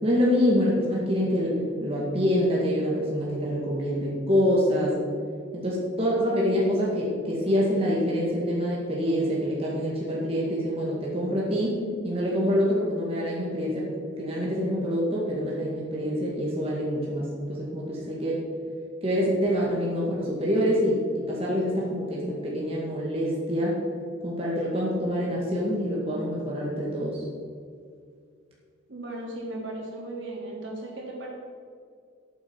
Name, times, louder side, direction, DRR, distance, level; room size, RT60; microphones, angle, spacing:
voice 1, 0.0-5.0 5.5-11.8 12.0-13.9 14.2-18.4 19.0-23.8 24.2-27.2, equal, 30° right, -5 dB, 1.9 m, -26 dB
voice 2, 28.9-31.3, right 1 dB, 75° right, -3 dB, 3.2 m, -36 dB
13.5 x 8.4 x 4.6 m, 2.2 s
head